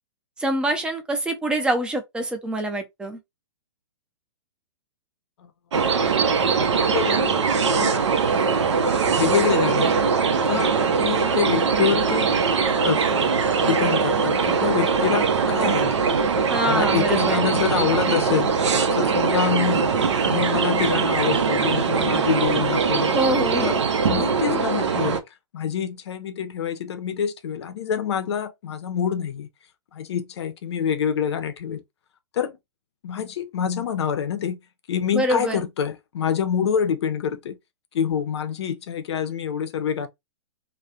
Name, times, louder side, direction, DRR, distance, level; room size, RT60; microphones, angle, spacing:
voice 1, 0.4-3.2 16.5-17.5 23.1-23.8 35.1-35.6, right 1 dB, 5° right, 0.5 m, -25 dB
sound 1, 5.7-25.2, right 5 dB, 75° right, 0.5 m, -21 dB
voice 2, 6.6-8.1 9.2-9.9 10.3-12.3 12.8-13.0 13.6-16.1 16.7-18.5 18.9-19.9 20.2-23.1 23.6-23.7 24.1-25.2 25.5-29.5 29.9-31.8 32.3-32.6 33.0-34.6 34.9-37.6 37.9-40.1, left 8 dB, 65° left, 0.6 m, -26 dB
2.3 x 2.1 x 2.7 m
hypercardioid pair, 115°, 15 cm